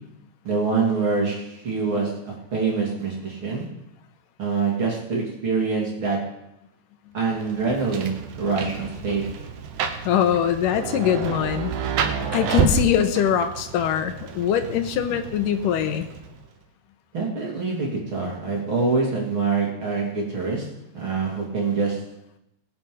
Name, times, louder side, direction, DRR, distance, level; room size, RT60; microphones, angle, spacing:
voice 1, 0.4-3.7 4.4-6.2 7.1-9.2 17.1-20.7 20.9-22.0, right 4 dB, 40° right, -2 dB, 3.3 m, -25 dB
Rain, 7.4-16.5, right 6 dB, 80° right, 2.7 m, -29 dB
voice 2, 10.1-11.7 12.3-16.1, left 9 dB, 80° left, 8 dB, 2.4 m, -22 dB
19.0 x 7.0 x 5.5 m, 0.85 s
omnidirectional pair, 3.8 m